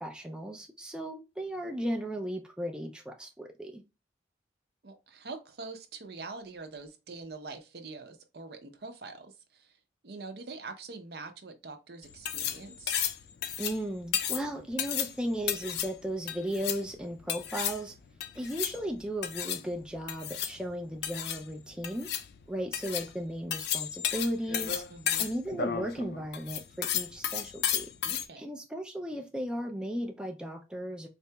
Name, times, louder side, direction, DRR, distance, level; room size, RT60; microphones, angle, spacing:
voice 1, 0.0-3.8 13.6-18.0 18.4-22.1 22.5-24.8 25.2-27.9 28.4-31.1, equal, 5° right, 0.3 m, -36 dB
voice 2, 4.8-9.7 10.0-12.9 24.9-25.3 28.0-28.5, right 3 dB, 65° right, 0.6 m, -44 dB
sound 1, 12.0-28.3, left 9 dB, 65° left, 0.4 m, -34 dB
4.1 x 2.8 x 2.2 m
head